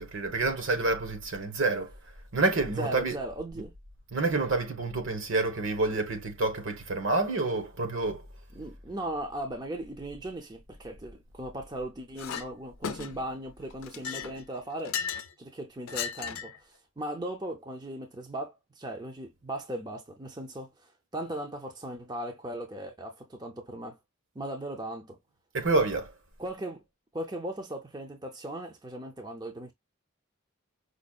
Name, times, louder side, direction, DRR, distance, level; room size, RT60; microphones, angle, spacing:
voice 1, 0.0-1.9 2.3-3.2 4.1-8.3 25.5-26.1, right 3 dB, 70° right, 1.1 m, -28 dB
voice 2, 2.8-3.7 8.5-15.0 15.4-24.0 24.4-25.2 26.4-26.8 27.1-29.7, right 1 dB, 20° right, 0.5 m, -38 dB
Chink clink, 12.2-12.5 12.8-13.3 13.8-15.3 15.9-16.6, left 7 dB, 90° left, 0.5 m, -35 dB
5.1 x 2.0 x 2.3 m
head